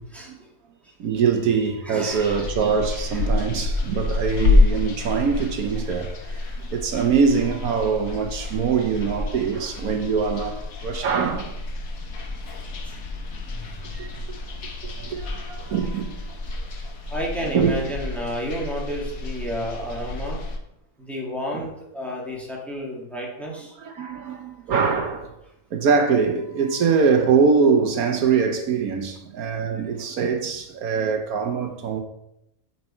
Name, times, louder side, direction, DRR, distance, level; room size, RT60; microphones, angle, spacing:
voice 1, 1.0-11.6 13.9-14.1 15.0-16.3 17.5-17.8 21.5-21.6 23.8-25.3 25.7-32.0, right 5 dB, 75° right, 1.4 m, -23 dB
voice 2, 1.8-2.5 3.1-3.3 4.1-4.3 12.8-13.0 13.5-13.9 17.1-20.4 21.0-23.8, equal, ahead, 2.0 m, -31 dB
sound 1, 2.1-20.6, left 2 dB, 70° left, 1.5 m, -28 dB
10.0 x 5.5 x 4.4 m
omnidirectional pair, 1.6 m